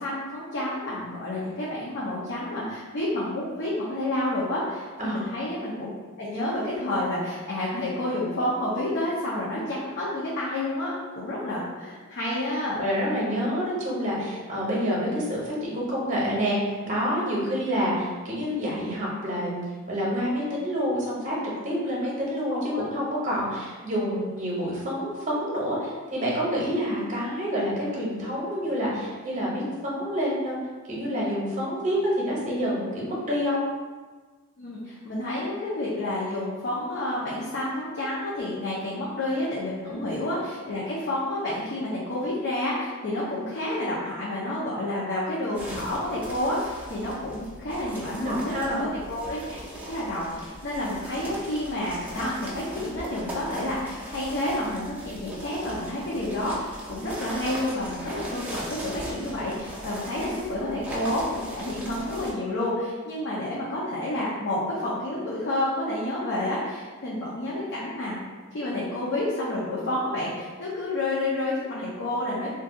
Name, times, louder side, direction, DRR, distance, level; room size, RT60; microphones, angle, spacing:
voice 1, 0.0-12.8 22.5-22.8 34.6-49.6 49.8-68.2 68.5-72.5, left 1 dB, 50° left, -6 dB, 0.5 m, -29 dB
voice 2, 12.7-19.6 19.9-21.4 21.6-30.6 30.9-33.6 39.8-40.0 48.1-48.8, equal, 35° right, -5 dB, 0.8 m, -28 dB
sound 1, 45.5-62.3, right 1 dB, 10° right, 0.4 m, -39 dB
2.6 x 2.3 x 3.5 m, 1.4 s
head